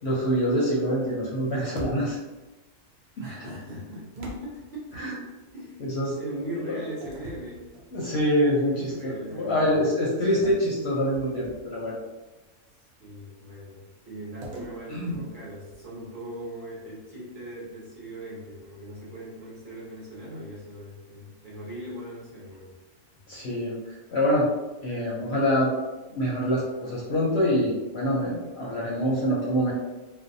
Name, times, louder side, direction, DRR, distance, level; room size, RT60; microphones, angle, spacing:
voice 1, 0.0-2.2 3.2-3.3 4.9-5.2 5.8-6.7 7.9-12.0 14.9-15.2 23.3-24.5 24.8-25.7 26.1-29.7, equal, 65° left, -5 dB, 0.7 m, -25 dB
sound 1, 1.7-2.4 4.2-5.5 7.0-8.3 8.8-9.1 10.4-11.9 14.4-16.1, equal, 80° right, 1.0 m, -43 dB
voice 2, 3.2-5.3 5.5-7.7 8.6-9.8 13.0-22.7 23.1-23.2, right 1 dB, 45° right, -8 dB, 0.8 m, -40 dB
2.5 x 2.0 x 2.5 m, 1.1 s
omnidirectional pair, 1.4 m